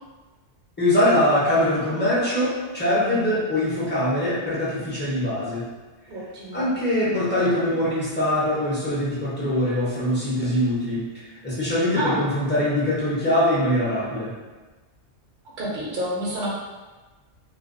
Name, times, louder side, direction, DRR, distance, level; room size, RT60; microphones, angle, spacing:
voice 1, 0.8-5.7 6.5-11.0 11.4-14.3, left 1 dB, 10° left, -9 dB, 0.5 m, -22 dB
voice 2, 6.1-6.7 12.0-12.3 15.6-16.5, right 1 dB, 50° right, -5 dB, 0.7 m, -29 dB
2.4 x 2.2 x 2.4 m, 1.2 s
omnidirectional pair, 1.2 m